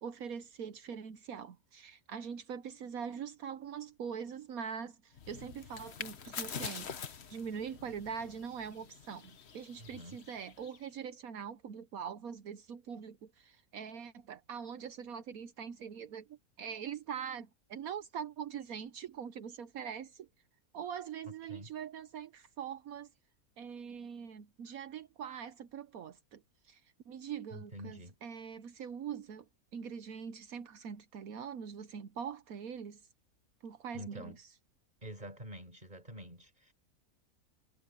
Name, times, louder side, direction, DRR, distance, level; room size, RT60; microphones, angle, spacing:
voice 1, 0.0-20.3 20.7-23.1 23.6-26.8 27.1-29.5 29.7-33.1 33.6-34.3, right 7 dB, 75° right, 1.3 m, -43 dB
sound 1, 5.1-10.9, left 7 dB, 50° left, 1.2 m, -46 dB
voice 2, 9.8-10.2 21.3-21.7 27.5-28.2 33.9-34.4 35.0-36.7, equal, 30° right, 4.8 m, -47 dB
omnidirectional pair, 1.5 m